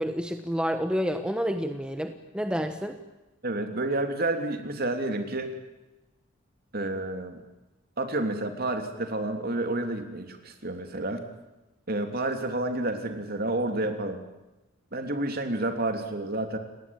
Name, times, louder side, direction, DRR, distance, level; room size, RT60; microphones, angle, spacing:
voice 1, 0.0-3.0, equal, 5° right, 7 dB, 1.2 m, -29 dB
voice 2, 3.4-5.5 6.7-7.4 8.0-11.2 11.9-14.2 14.9-16.6, right 2 dB, 50° right, 6 dB, 3.3 m, -30 dB
29.5 x 18.5 x 9.0 m, 1.1 s
head